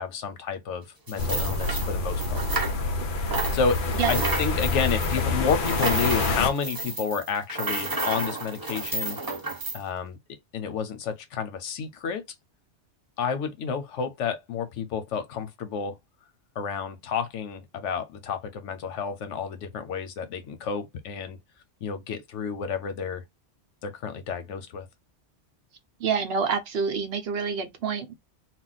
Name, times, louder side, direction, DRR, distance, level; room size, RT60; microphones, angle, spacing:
voice 1, 0.0-2.4 3.5-9.4 9.7-10.2 10.5-12.2 13.2-16.0 16.6-21.4 21.8-23.2 23.8-24.9, left 6 dB, 90° left, 1.0 m, -30 dB
sound 1, 1.1-3.0 3.3-9.8, right 3 dB, 25° right, 0.6 m, -31 dB
sound 2, 1.2-6.5, left 3 dB, 55° left, 0.6 m, -27 dB
voice 2, 26.0-28.1, right 6 dB, 65° right, 0.8 m, -27 dB
2.4 x 2.1 x 3.9 m
omnidirectional pair, 1.2 m